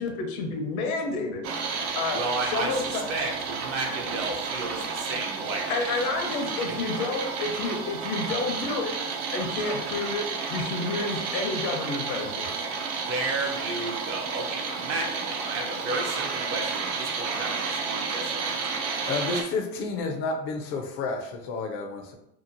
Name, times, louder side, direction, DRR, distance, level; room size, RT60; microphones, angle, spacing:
voice 1, 0.0-1.5 2.0-2.2 2.5-3.0 5.7-9.0 9.3-12.5, left 3 dB, 80° left, 3 dB, 0.8 m, -30 dB
sound 1, 1.4-19.4, right 5 dB, 80° right, 0.7 m, -31 dB
voice 2, 2.1-5.7 6.3-6.4 6.7-6.8 13.0-18.7, right 3 dB, 35° right, 1 dB, 0.4 m, -33 dB
voice 3, 19.1-22.2, left 3 dB, 30° left, 3 dB, 0.4 m, -30 dB
2.9 x 2.2 x 2.5 m, 0.77 s
supercardioid pair, 130°, 42 cm